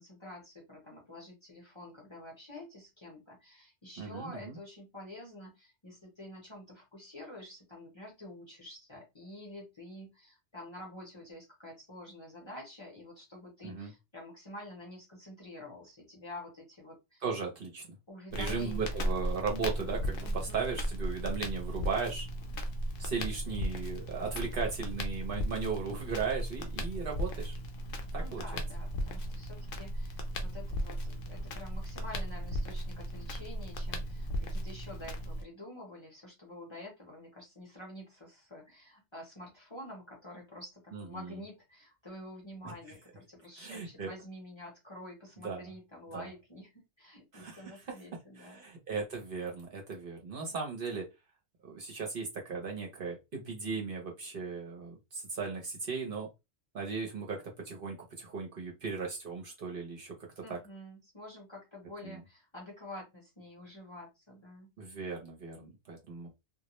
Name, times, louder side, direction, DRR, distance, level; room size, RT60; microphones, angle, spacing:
voice 1, 0.0-17.2 18.1-19.0 20.2-20.6 28.1-48.6 60.4-64.7, left 1 dB, 30° left, -2 dB, 0.8 m, -48 dB
voice 2, 4.0-4.6 13.6-13.9 17.2-17.9 18.3-22.3 23.0-27.6 28.1-28.6 40.9-41.4 42.6-42.8 43.6-44.1 45.4-45.7 46.1-46.3 47.3-47.8 48.4-51.1 51.6-56.3 56.7-60.6 62.0-62.2 64.8-66.3, right 5 dB, 55° right, 0 dB, 0.8 m, -37 dB
Crackle, 18.3-35.4, equal, 60° left, 0.7 m, -36 dB
2.2 x 2.0 x 2.9 m, 0.23 s
omnidirectional pair, 1.2 m